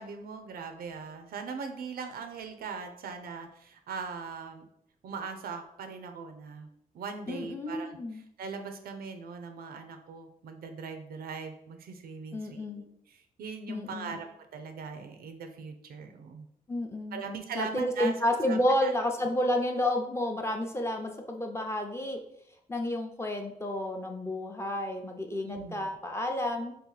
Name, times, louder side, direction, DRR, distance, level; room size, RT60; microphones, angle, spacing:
voice 1, 0.0-4.7 5.0-6.7 6.9-12.9 13.4-14.3 14.5-16.5 17.1-18.9 25.4-25.9, right 5 dB, 85° right, 6 dB, 0.5 m, -40 dB
voice 2, 7.3-8.2 12.3-12.8 13.7-14.2 16.7-17.2 17.5-22.2 22.7-26.8, left 1 dB, 15° left, 3 dB, 0.6 m, -30 dB
2.8 x 2.7 x 3.9 m, 0.73 s
cardioid pair, 80°, 15 cm